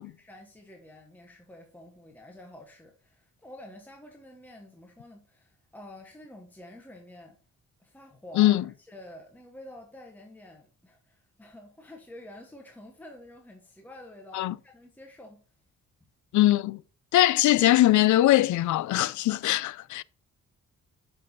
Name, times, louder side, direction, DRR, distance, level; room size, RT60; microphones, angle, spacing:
voice 1, 0.2-7.4 7.8-15.4, left 1 dB, 5° left, 1.1 m, -49 dB
voice 2, 16.3-16.8 17.1-20.0, left 15 dB, 75° left, 0.5 m, -21 dB
7.5 x 6.1 x 2.7 m
cardioid pair, 140°, 30 cm